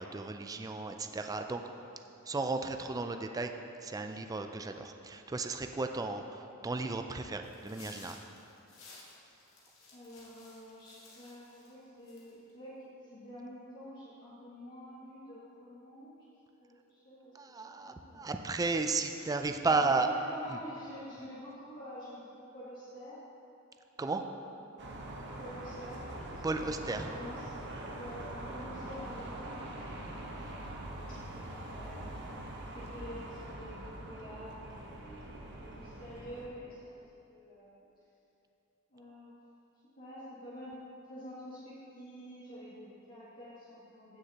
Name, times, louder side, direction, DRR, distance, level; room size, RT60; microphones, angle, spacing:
voice 1, 0.0-1.6 2.3-3.5 3.8-8.2 17.3-20.1 20.5-20.6 24.0-24.2 26.4-27.1, right 3 dB, 15° right, 6 dB, 0.3 m, -34 dB
sound 1, 7.4-11.7 12.0-12.5, left 3 dB, 80° left, 1.8 m, -55 dB
voice 2, 9.9-16.1 16.9-18.6 19.1-23.2 24.6-27.6 27.9-30.3 31.1-32.4 32.7-37.0 37.3-37.8 38.9-39.3 40.0-40.8 41.1-44.2, equal, 45° left, -13 dB, 2.0 m, -48 dB
sound 2, 24.8-36.5, right 1 dB, 60° right, 1.0 m, -43 dB
15.5 x 6.4 x 2.9 m, 2.9 s
head